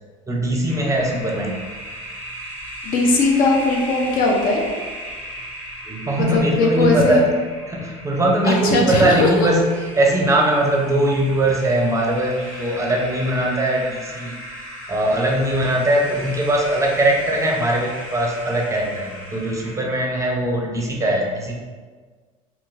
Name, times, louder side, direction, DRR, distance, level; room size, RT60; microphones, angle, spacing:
voice 1, 0.3-1.6 5.9-7.3 7.7-9.7 10.0-14.3 14.9-21.5, right 1 dB, 20° right, -1 dB, 0.6 m, -20 dB
sound 1, 0.7-19.8, equal, 85° left, 1.2 m, -36 dB
voice 2, 2.8-4.6 6.2-7.2 8.4-9.5, left 3 dB, 55° left, 0 dB, 0.6 m, -19 dB
2.9 x 2.7 x 2.5 m, 1.5 s
supercardioid pair, 85°, 17 cm